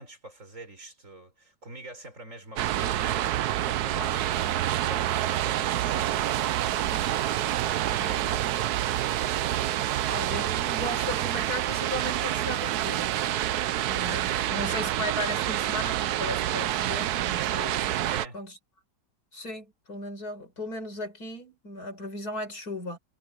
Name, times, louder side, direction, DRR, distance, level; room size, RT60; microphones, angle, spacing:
voice 1, 0.0-9.1 14.3-14.7 18.0-18.4, right 1 dB, 45° right, 6.4 m, -45 dB
sound 1, 2.6-18.3, right 12 dB, 75° right, 1.2 m, -27 dB
voice 2, 10.1-13.2 13.9-18.0 18.3-18.6 19.3-23.0, left 1 dB, 60° left, 6.2 m, -36 dB
omnidirectional pair, 1.8 m